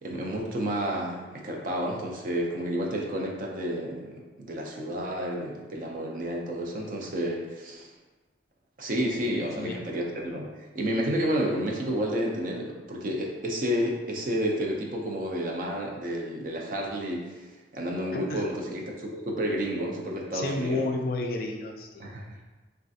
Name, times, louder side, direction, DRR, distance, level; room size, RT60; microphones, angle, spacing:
voice 1, 0.0-7.9 8.8-20.9 22.0-22.4, equal, 45° right, 0 dB, 0.4 m, -31 dB
voice 2, 9.3-9.8 18.1-18.4 20.3-22.1, left 2 dB, 55° left, 2 dB, 0.3 m, -31 dB
3.2 x 2.3 x 2.6 m, 1.2 s
head